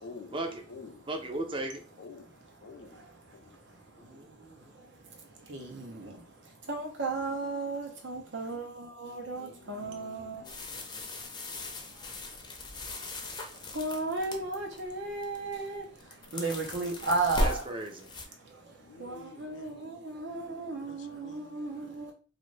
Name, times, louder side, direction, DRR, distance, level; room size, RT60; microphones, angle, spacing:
voice 1, 0.0-0.4 0.7-1.0 1.5-1.6 2.0-2.2 2.6-3.0 4.1-4.2 9.1-11.1 18.8-19.9 20.8-21.8, left 4 dB, 75° left, 0.4 m, -49 dB
voice 2, 1.1-1.8 4.0-4.7 17.4-18.1, right 2 dB, 30° right, 0.5 m, -36 dB
voice 3, 5.5-6.1 6.7-10.4 13.7-15.8 16.3-17.5 19.0-22.1, right 3 dB, 80° right, 0.8 m, -34 dB
sound 1, 10.4-14.8 15.2-15.6 15.8-18.3, left 1 dB, 25° left, 0.5 m, -37 dB
2.5 x 2.5 x 3.1 m
head